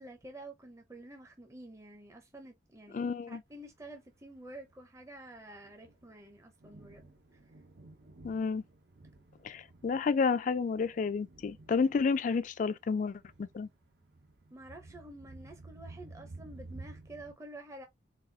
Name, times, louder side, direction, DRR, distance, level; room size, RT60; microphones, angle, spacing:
voice 1, 0.0-7.4 14.5-17.9, right 1 dB, 15° right, 0.6 m, -49 dB
voice 2, 2.9-3.4 8.2-8.6 9.4-13.7, left 5 dB, 45° left, 0.3 m, -30 dB
Thunder, 3.7-17.3, right 2 dB, 70° right, 0.8 m, -53 dB
4.1 x 2.3 x 2.6 m
head